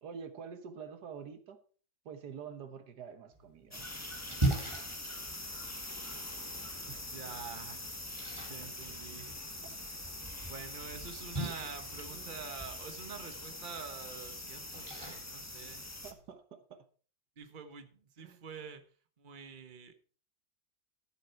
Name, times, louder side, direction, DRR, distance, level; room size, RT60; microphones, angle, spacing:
voice 1, 0.0-1.6 2.1-3.8 6.9-7.0 12.1-12.5 16.0-16.9 18.2-18.4, right 6 dB, 85° right, 1.7 m, -47 dB
Splash splatter, 3.3-16.3, right 2 dB, 15° right, 2.8 m, -41 dB
sound 1, 3.7-16.1, left 1 dB, 10° left, 1.1 m, -43 dB
voice 2, 7.1-7.9 8.5-9.4 10.5-15.9 17.4-18.8 19.2-19.9, right 6 dB, 35° right, 1.3 m, -47 dB
13.0 x 7.5 x 4.6 m
omnidirectional pair, 1.7 m